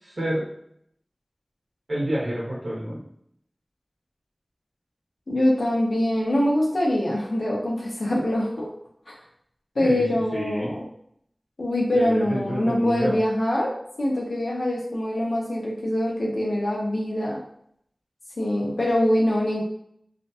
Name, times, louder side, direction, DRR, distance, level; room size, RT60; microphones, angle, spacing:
voice 1, 0.0-0.5 1.9-3.0 9.8-10.0 10.3-10.7 11.9-13.1, equal, 70° right, -7 dB, 0.9 m, -28 dB
voice 2, 5.3-8.7 9.1-9.2 9.8-10.8 11.6-13.7 14.0-17.4 18.4-19.6, left 1 dB, 85° left, -3 dB, 0.7 m, -24 dB
2.5 x 2.2 x 2.6 m, 0.70 s
wide cardioid pair, 45°, 0 cm